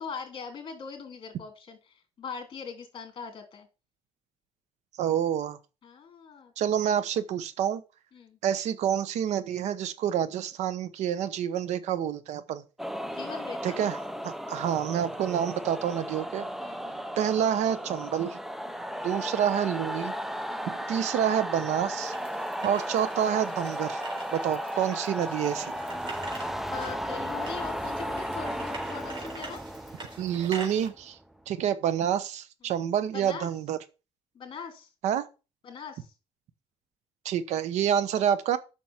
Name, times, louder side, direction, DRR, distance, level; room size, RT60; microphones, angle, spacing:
voice 1, 0.0-3.7 5.8-6.5 8.1-8.4 13.0-13.8 16.6-17.1 18.6-19.0 20.5-20.8 22.4-22.6 26.6-29.6 33.1-33.5 34.3-34.9 35.6-36.1, left 6 dB, 45° left, 3.1 m, -41 dB
voice 2, 5.0-5.6 6.6-7.8 8.4-12.6 13.6-14.0 14.2-16.5 17.2-18.4 19.0-20.1 20.7-22.1 22.6-24.0 24.3-25.7 30.2-31.2 31.5-33.8 35.0-35.3 37.2-38.6, right 9 dB, 80° right, 1.0 m, -28 dB
sound 1, 12.8-31.3, equal, ahead, 0.6 m, -35 dB
sound 2, 22.0-30.9, right 3 dB, 45° right, 4.0 m, -45 dB
7.4 x 6.3 x 7.2 m
cardioid pair, 125°, 12 cm